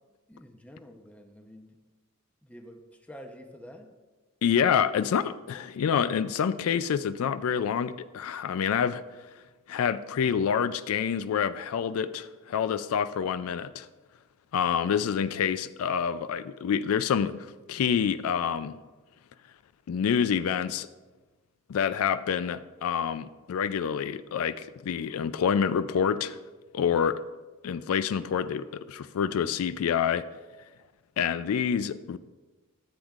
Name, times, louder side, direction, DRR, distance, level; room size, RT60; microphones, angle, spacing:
voice 1, 0.3-1.8 2.4-3.9, equal, 5° left, 4 dB, 0.7 m, -48 dB
voice 2, 4.4-9.0 9.7-13.9 14.5-18.8 19.9-20.9 21.7-26.4 26.7-27.2 27.6-30.2 31.2-32.2, left 7 dB, 80° left, 13 dB, 0.3 m, -27 dB
13.5 x 8.0 x 2.4 m, 1.2 s
head